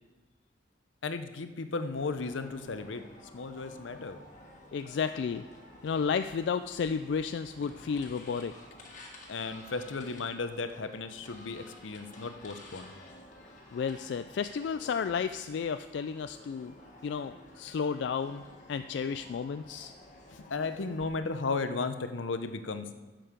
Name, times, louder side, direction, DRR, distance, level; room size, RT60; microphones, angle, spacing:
voice 1, 1.0-3.0 3.3-4.2 9.3-12.9 20.3-22.9, left 3 dB, 85° left, 10 dB, 0.7 m, -35 dB
sound 1, 1.9-21.0, left 1 dB, 40° left, 1.8 m, -52 dB
voice 2, 4.7-5.4 5.8-8.5 13.7-16.7 17.0-18.4 18.7-19.9, left 6 dB, 65° left, 10 dB, 0.3 m, -32 dB
11.0 x 7.7 x 5.2 m, 1.2 s
head